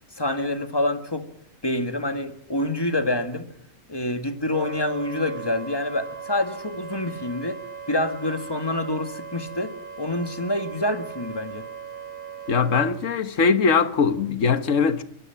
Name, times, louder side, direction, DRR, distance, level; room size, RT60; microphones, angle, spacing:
voice 1, 0.2-1.3 1.6-3.5 3.9-7.6 7.9-11.7, left 1 dB, 20° left, 1.8 m, -27 dB
Wind instrument woodwind instrument, 4.5-13.0, right 6 dB, 40° right, 2.4 m, -38 dB
voice 2, 12.5-15.0, left 5 dB, 70° left, 1.6 m, -21 dB
24.0 x 21.0 x 5.8 m
omnidirectional pair, 1.4 m